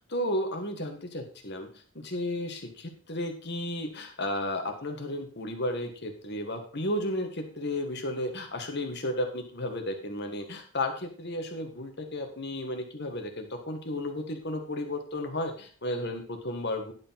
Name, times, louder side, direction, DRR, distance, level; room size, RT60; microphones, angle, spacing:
voice 1, 0.0-1.7 1.9-16.9, left 1 dB, 50° left, 4 dB, 1.6 m, -33 dB
11.0 x 5.0 x 5.8 m, 0.42 s
head